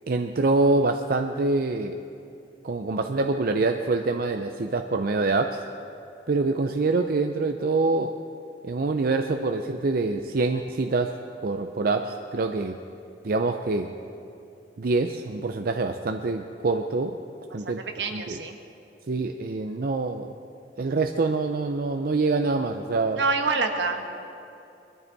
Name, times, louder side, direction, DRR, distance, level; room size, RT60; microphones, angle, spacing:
voice 1, 0.1-2.0 2.6-5.6 6.3-8.2 8.6-11.2 11.4-12.8 13.2-14.0 14.8-17.2 17.5-17.9 18.1-18.4 19.1-20.3 20.8-23.2, right 3 dB, 55° right, 6 dB, 0.5 m, -25 dB
voice 2, 17.5-18.6 23.2-24.2, right 4 dB, 80° right, 5 dB, 1.3 m, -27 dB
21.5 x 13.0 x 4.1 m, 2.7 s
head